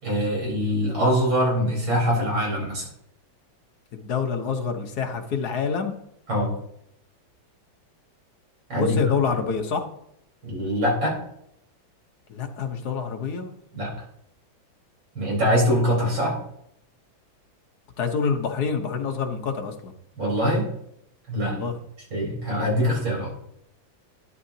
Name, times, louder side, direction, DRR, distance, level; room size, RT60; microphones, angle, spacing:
voice 1, 0.0-2.9 6.3-6.5 8.7-9.0 10.4-11.2 13.7-13.9 15.1-16.3 20.2-20.6 21.3-21.6 22.1-23.3, equal, 75° right, -4 dB, 5.2 m, -23 dB
voice 2, 3.9-5.9 8.7-9.8 12.3-13.5 18.0-19.9 21.4-21.8, left 5 dB, 55° left, 4 dB, 1.5 m, -27 dB
12.5 x 9.9 x 2.8 m, 0.75 s
omnidirectional pair, 2.2 m